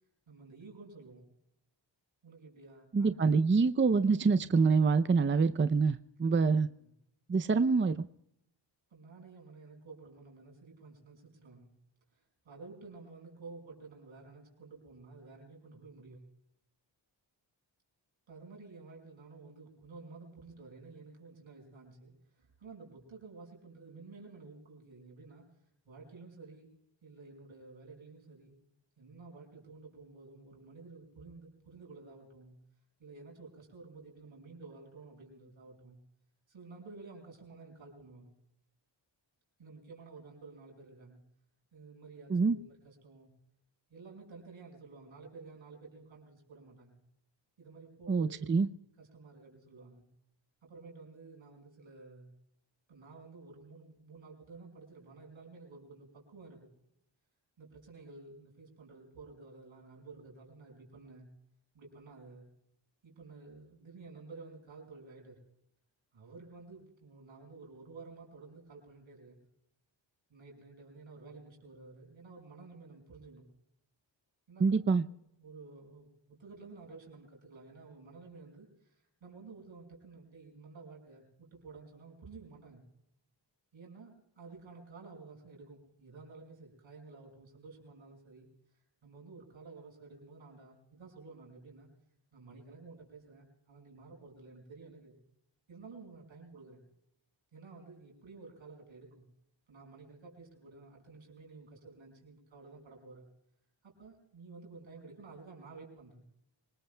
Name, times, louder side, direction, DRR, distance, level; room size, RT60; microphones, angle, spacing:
voice 1, 0.3-1.3 2.2-3.4 6.2-6.4 8.9-11.7 12.1-16.2 18.3-25.6 25.9-26.7 27.0-28.6 29.0-32.5 33.0-36.0 36.5-38.3 39.6-41.2 41.7-43.3 43.9-47.0 47.6-48.6 49.0-50.1 50.6-52.3 52.9-56.7 57.6-61.3 61.7-62.5 63.0-65.4 66.1-69.4 70.3-73.5 74.5-74.8 75.2-82.8 83.7-88.5 89.0-91.9 92.3-95.2 95.7-96.8 97.5-99.2 99.7-103.2 103.8-106.2, right 3 dB, 85° right, 1 dB, 5.6 m, -52 dB
voice 2, 2.9-6.7 7.3-8.1 42.3-42.6 48.1-48.7 74.6-75.0, right 4 dB, 25° right, 11 dB, 0.6 m, -26 dB
25.5 x 19.5 x 2.2 m, 0.78 s
cardioid pair, 65°, 46 cm